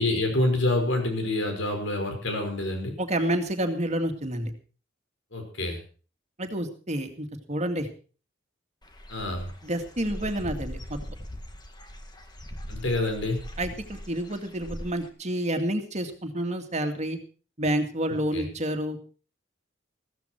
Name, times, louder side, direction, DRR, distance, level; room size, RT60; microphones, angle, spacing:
voice 1, 0.0-3.0 5.3-5.8 9.1-9.5 12.7-13.4 18.3-18.5, left 2 dB, 85° left, 4 dB, 5.3 m, -27 dB
voice 2, 3.0-4.5 6.4-7.9 9.6-11.0 13.6-17.2 17.6-19.0, right 1 dB, 40° right, 5 dB, 2.2 m, -29 dB
Dog / Bird, 8.8-15.1, equal, 25° left, 1.8 m, -40 dB
15.0 x 14.5 x 4.5 m, 0.38 s
head